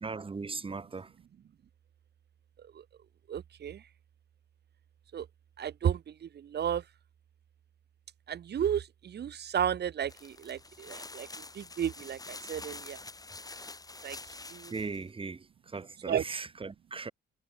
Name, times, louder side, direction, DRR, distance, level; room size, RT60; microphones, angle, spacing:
voice 1, 0.0-1.1 14.7-17.1, right 4 dB, 25° right, 2.0 m, -38 dB
voice 2, 3.3-3.8 5.1-5.3 5.6-6.8 8.3-13.0 14.0-14.2 14.5-14.7 16.1-16.2, right 9 dB, 55° right, 2.0 m, -33 dB
sound 1, 10.1-15.0, left 3 dB, 20° left, 2.1 m, -46 dB
cardioid pair, 90°, 20 cm